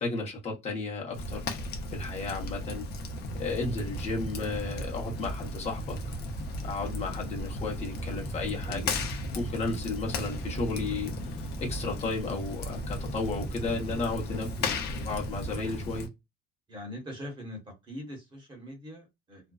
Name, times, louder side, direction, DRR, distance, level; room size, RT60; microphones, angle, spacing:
voice 1, 0.0-1.5 1.9-2.9 3.3-6.0 6.6-8.9 9.3-16.1, left 3 dB, 35° left, 0.9 m, -34 dB
Fire, 1.1-16.1, left 2 dB, 60° left, 0.7 m, -36 dB
sound 1, 3.3-15.8, right 3 dB, 5° right, 0.8 m, -41 dB
voice 2, 16.7-17.6 17.9-19.5, equal, 25° right, 1.1 m, -42 dB
2.5 x 2.2 x 2.3 m
cardioid pair, 130°, 18 cm